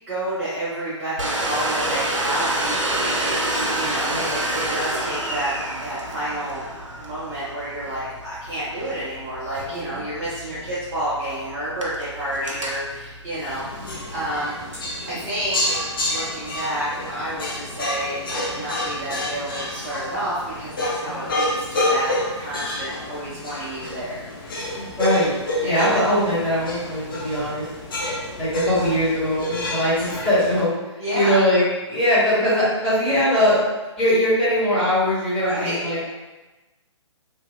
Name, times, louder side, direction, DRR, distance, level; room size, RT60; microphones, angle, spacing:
voice 1, 0.1-5.5 5.8-6.6 7.0-14.5 15.1-24.3 25.6-25.9 31.0-31.4 35.4-35.8, right 1 dB, 15° right, -12 dB, 0.6 m, -30 dB
Domestic sounds home sounds, 1.2-14.3, right 1 dB, 80° right, 0.6 m, -29 dB
sound 1, 13.4-30.6, left 1 dB, 45° left, 0.8 m, -29 dB
voice 2, 24.7-27.6 28.4-30.8 31.1-33.6 34.0-36.0, left 1 dB, 5° left, -14 dB, 1.2 m, -21 dB
2.9 x 2.6 x 2.2 m, 1.1 s
figure-of-eight pair, 130°, 16 cm